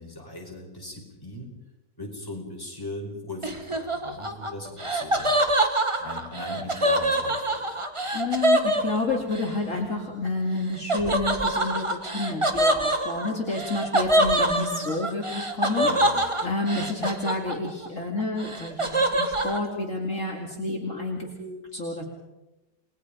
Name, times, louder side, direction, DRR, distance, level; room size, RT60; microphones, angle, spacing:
voice 1, 0.0-1.5 2.0-5.4 5.9-7.8 15.8-16.2, left 1 dB, 10° left, -1 dB, 5.2 m, -39 dB
Laughter, 3.4-9.5 10.9-17.9 18.2-19.6, right 1 dB, 20° right, 1.6 m, -25 dB
voice 2, 8.1-15.9 16.1-22.0, left 2 dB, 45° left, -1 dB, 2.9 m, -30 dB
29.5 x 20.5 x 5.2 m, 1.0 s
omnidirectional pair, 1.9 m